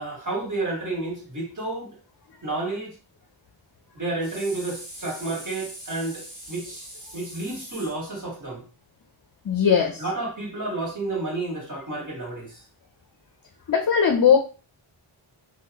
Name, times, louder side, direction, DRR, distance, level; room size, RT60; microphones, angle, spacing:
voice 1, 0.0-2.0 2.4-2.9 3.9-8.6 10.0-12.6, right 2 dB, 35° right, -2 dB, 1.7 m, -31 dB
voice 2, 9.4-10.0 13.7-14.4, left 7 dB, 45° left, 4 dB, 0.5 m, -19 dB
2.9 x 2.3 x 3.5 m, 0.35 s
wide cardioid pair, 50°, 50 cm